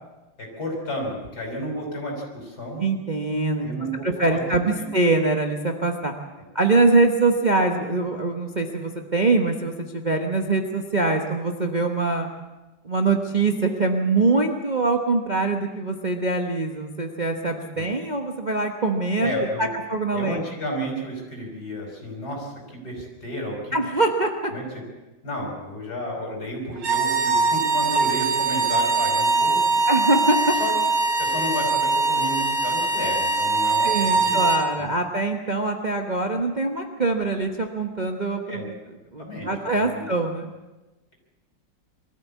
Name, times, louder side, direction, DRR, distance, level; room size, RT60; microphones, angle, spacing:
voice 1, 0.4-2.8 3.6-4.9 17.7-17.9 19.2-19.7 20.1-23.8 24.5-24.6 25.2-29.8 30.6-30.8 31.2-34.4 34.8-34.9 38.5-38.7 39.2-39.5 39.8-40.1, equal, 55° left, 0 dB, 6.1 m, -32 dB
voice 2, 2.8-3.7 4.0-6.1 6.5-12.3 12.8-19.3 19.6-20.4 23.7-24.5 29.9-30.5 33.8-38.7 39.1-40.5, right 3 dB, 30° right, 3 dB, 1.1 m, -23 dB
sound 1, 26.8-34.7, right 4 dB, 70° right, 2.9 m, -22 dB
22.5 x 14.0 x 8.4 m, 1.1 s
omnidirectional pair, 2.0 m